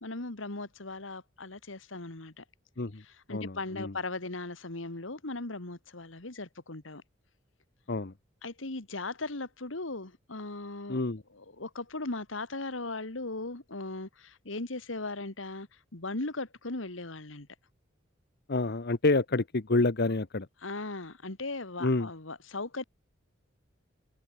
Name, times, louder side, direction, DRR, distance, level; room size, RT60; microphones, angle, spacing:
voice 1, 0.0-2.4 3.0-7.0 8.4-11.0 11.3-17.5 20.6-22.8, left 2 dB, 75° left, 2.2 m, -38 dB
voice 2, 3.3-3.9 7.9-8.1 10.9-11.2 18.5-20.5 21.8-22.1, left 2 dB, 55° left, 1.1 m, -28 dB
head